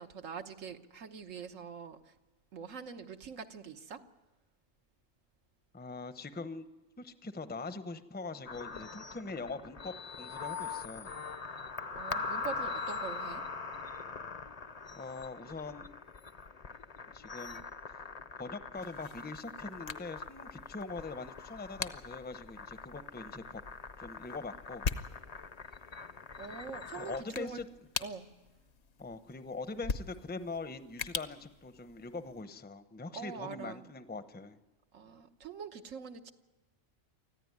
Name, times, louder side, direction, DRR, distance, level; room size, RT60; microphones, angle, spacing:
voice 1, 0.0-2.1 2.5-4.0 11.9-13.4 26.4-27.6 28.0-28.3 33.1-33.8 34.9-36.3, right 6 dB, 80° right, 6 dB, 1.5 m, -44 dB
voice 2, 5.7-6.7 7.0-11.1 14.9-16.0 17.1-17.6 18.4-23.6 24.0-24.9 26.9-27.7 29.0-34.6, left 3 dB, 10° left, 11 dB, 0.7 m, -42 dB
sound 1, 8.5-27.2, left 4 dB, 35° left, 0.7 m, -43 dB
sound 2, 18.8-32.4, left 6 dB, 60° left, 1.1 m, -44 dB
24.5 x 15.0 x 9.5 m, 1.1 s
omnidirectional pair, 1.3 m